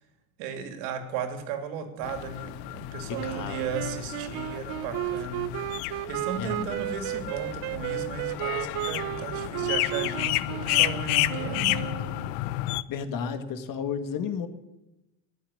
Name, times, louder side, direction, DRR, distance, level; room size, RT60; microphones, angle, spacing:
voice 1, 0.4-11.8, right 6 dB, 80° right, 6 dB, 2.8 m, -36 dB
sound 1, 2.0-12.8, left 17 dB, 80° left, 0.8 m, -31 dB
voice 2, 3.1-3.6 6.4-6.7 12.9-14.5, left 6 dB, 45° left, 8 dB, 1.7 m, -32 dB
sound 2, 3.2-12.3, right 17 dB, 55° right, 0.6 m, -34 dB
19.0 x 7.3 x 9.8 m, 1.0 s
cardioid pair, 140°, 45 cm